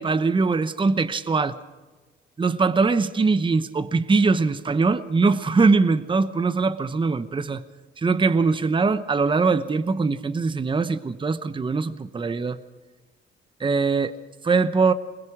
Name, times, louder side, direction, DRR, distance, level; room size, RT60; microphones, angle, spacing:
voice 1, 0.0-1.6 2.4-7.6 8.0-12.6 13.6-14.1 14.4-14.9, right 4 dB, 25° right, 12 dB, 0.9 m, -22 dB
21.5 x 19.5 x 6.2 m, 1.3 s
cardioid pair, 90°, 20 cm